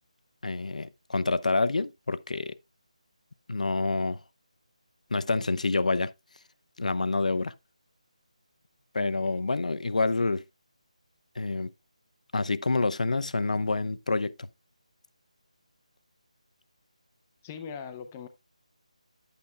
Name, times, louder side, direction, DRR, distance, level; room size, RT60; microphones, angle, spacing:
voice 1, 0.4-2.5 3.5-4.2 5.1-6.1 6.8-7.5 8.9-10.4 11.4-11.7 12.3-14.5, left 3 dB, 75° left, 0.7 m, -27 dB
voice 2, 17.4-18.3, left 6 dB, 10° left, 0.5 m, -40 dB
10.0 x 8.4 x 2.2 m
figure-of-eight pair, 175°, 4 cm